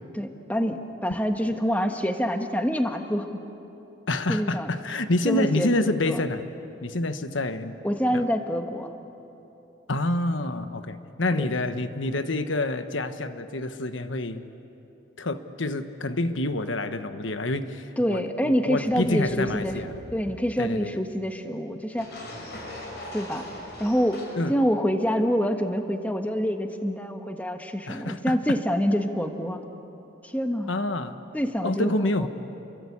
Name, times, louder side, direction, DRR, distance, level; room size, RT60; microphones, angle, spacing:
voice 1, 0.1-3.4 4.3-4.7 5.2-6.2 7.8-8.9 11.3-11.5 18.0-19.8 20.1-22.2 23.1-23.4 23.8-29.6 30.2-30.7 31.3-32.3, equal, 10° left, 5 dB, 1.4 m, -26 dB
voice 2, 4.1-6.4 6.8-7.8 8.1-8.2 9.9-14.4 15.2-19.9 20.6-20.9 24.4-24.5 27.9-28.6 30.7-31.2 31.6-32.3, left 2 dB, 85° left, 9 dB, 1.3 m, -27 dB
sound 1, 18.8-20.6 21.9-24.4, left 1 dB, 55° left, 6.3 m, -41 dB
30.0 x 23.5 x 8.6 m, 2.9 s
head